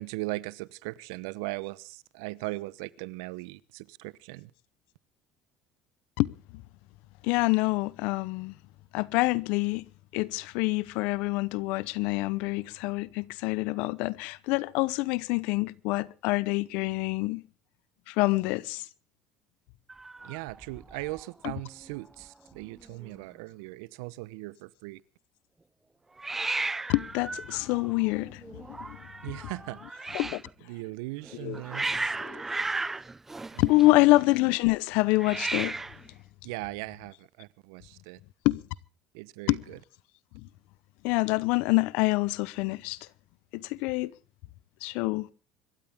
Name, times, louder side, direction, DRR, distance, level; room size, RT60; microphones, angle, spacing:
voice 1, 0.0-4.5 20.2-25.0 29.2-30.1 30.7-31.8 33.5-34.2 36.4-38.2 39.1-39.8, right 21 dB, 85° right, 0.9 m, -39 dB
voice 2, 7.2-8.5 8.9-9.9 10.1-17.4 18.1-18.8 21.4-21.6 26.9-29.0 29.3-29.4 29.8-30.4 31.3-31.6 32.2-32.4 33.6-35.8 38.4-38.6 39.5-39.6 41.0-43.0 43.5-44.1 44.8-45.3, left 21 dB, 75° left, 0.9 m, -26 dB
Hiss, 19.9-21.2 21.5-22.0 22.2-22.3 22.5-23.2 26.2-30.5 31.2-34.2 35.1-36.1, right 3 dB, 15° right, 0.7 m, -35 dB
25.5 x 13.5 x 3.6 m
supercardioid pair, 95°, 2 cm